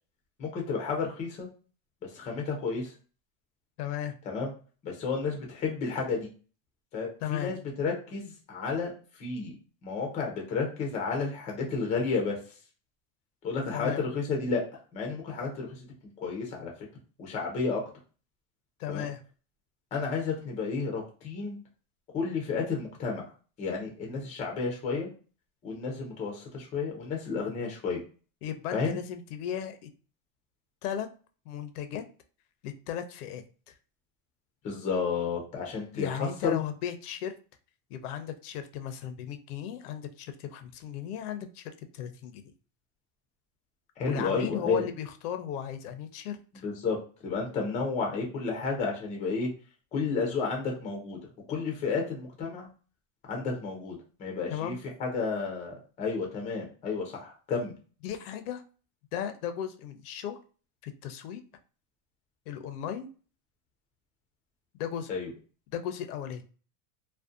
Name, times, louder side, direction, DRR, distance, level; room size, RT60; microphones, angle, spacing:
voice 1, 0.4-1.5 2.0-2.9 4.3-4.5 4.8-6.3 6.9-8.9 9.2-9.5 9.8-12.4 13.4-14.6 14.9-15.9 16.2-16.7 17.2-17.8 18.9-19.1 19.9-21.6 22.1-23.3 23.6-25.1 25.6-28.0 28.7-29.0 34.6-36.6 44.0-44.8 46.6-47.0 47.2-49.5 49.9-51.2 51.5-52.7 53.3-57.7 65.1-65.3, left 4 dB, 15° left, 1 dB, 0.4 m, -31 dB
voice 2, 3.8-4.1 7.2-7.5 13.7-14.0 18.8-19.2 28.4-29.9 30.8-31.1 31.5-32.0 32.6-33.7 35.9-37.3 37.9-42.4 44.0-46.6 54.5-54.8 58.0-58.6 59.1-60.4 60.8-61.4 62.5-63.1 64.7-65.1 65.7-66.4, left 9 dB, 85° left, 9 dB, 0.6 m, -36 dB
2.5 x 2.1 x 2.4 m, 0.38 s
supercardioid pair, 145°, 44 cm